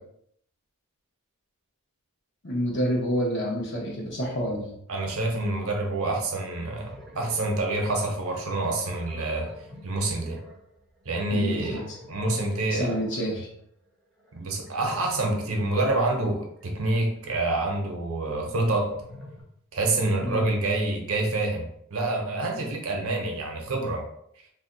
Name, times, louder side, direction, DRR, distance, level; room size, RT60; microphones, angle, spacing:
voice 1, 2.4-4.8 11.3-11.9 12.7-13.5 20.2-20.4, equal, 55° left, -2 dB, 1.0 m, -28 dB
voice 2, 4.9-9.5 9.8-10.4 11.1-11.8 12.1-12.9 14.3-18.9 19.7-24.0, right 2 dB, 65° right, 1 dB, 0.7 m, -27 dB
sound 1, 6.6-17.2 18.5-19.4, equal, ahead, 0.5 m, -48 dB
2.6 x 2.2 x 3.8 m, 0.71 s
head